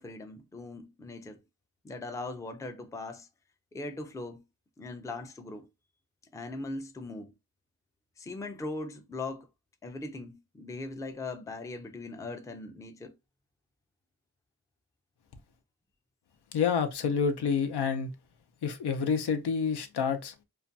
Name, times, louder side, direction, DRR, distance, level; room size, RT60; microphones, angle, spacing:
voice 1, 0.0-1.4 1.8-3.3 3.7-4.4 4.8-5.7 6.3-7.3 8.2-9.5 9.8-13.2, left 2 dB, 10° left, 0.3 m, -40 dB
voice 2, 16.5-18.1 18.6-20.3, left 6 dB, 85° left, 0.6 m, -28 dB
2.4 x 2.2 x 2.6 m
wide cardioid pair, 80°, 39 cm